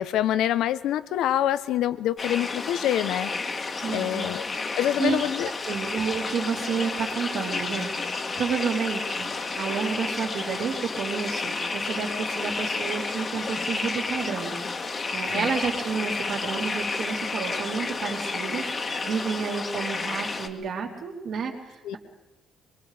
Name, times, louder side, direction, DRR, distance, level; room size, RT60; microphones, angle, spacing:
voice 1, 0.0-3.3 3.9-4.5 4.8-5.5 15.3-15.5 21.8-22.0, left 11 dB, 85° left, 14 dB, 0.9 m, -26 dB
sound 1, 2.2-20.5, left 3 dB, 25° left, 1.5 m, -31 dB
voice 2, 3.8-4.3 5.0-5.2 5.7-14.6 15.1-18.7 19.0-22.0, right 6 dB, 55° right, 1 dB, 3.7 m, -30 dB
25.0 x 22.5 x 5.1 m, 1.0 s
cardioid pair, 170°, 0 cm